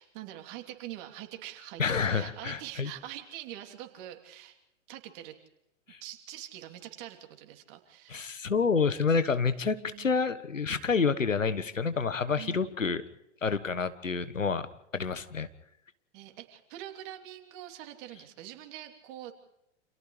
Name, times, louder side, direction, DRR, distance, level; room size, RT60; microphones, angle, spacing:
voice 1, 0.0-4.6 4.9-5.3 6.0-8.4 9.1-9.2 9.7-10.1 12.4-12.7 16.1-19.3, right 13 dB, 45° right, 5 dB, 3.1 m, -44 dB
voice 2, 1.8-2.9 5.9-6.0 8.1-13.0 13.4-14.7 14.9-15.5, left 5 dB, 85° left, 13 dB, 1.4 m, -28 dB
29.5 x 28.0 x 3.3 m, 0.83 s
figure-of-eight pair, 105°, 37 cm